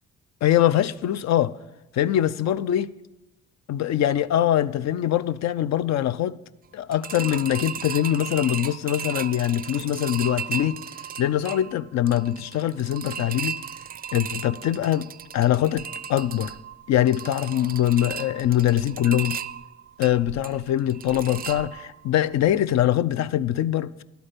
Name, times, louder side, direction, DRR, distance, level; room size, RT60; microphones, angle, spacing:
voice 1, 0.4-1.6 1.9-2.9 3.7-6.3 6.7-10.8 11.2-13.6 14.1-16.6 16.9-19.4 20.0-24.0, left 12 dB, 60° left, 0.5 m, -23 dB
sound 1, 6.9-22.1 22.4-22.5 22.9-23.0, right 8 dB, 30° right, 0.4 m, -36 dB
11.5 x 8.6 x 5.1 m
cardioid pair, 90°, 30 cm